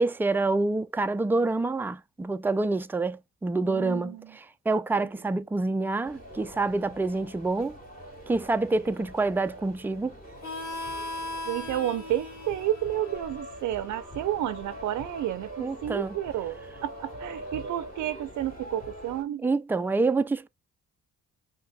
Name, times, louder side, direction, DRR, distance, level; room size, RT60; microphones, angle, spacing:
voice 1, 0.0-7.8 8.3-10.1 15.6-16.2 19.4-20.5, right 3 dB, 5° right, 0.3 m, -27 dB
voice 2, 3.7-4.3 4.9-5.1 11.4-19.4, right 12 dB, 75° right, 0.5 m, -31 dB
sound 1, 6.0-19.2, equal, 30° left, 2.4 m, -43 dB
Harmonica, 10.4-15.7, left 2 dB, 70° left, 1.9 m, -40 dB
5.7 x 2.8 x 2.2 m
cardioid pair, 90°, 30 cm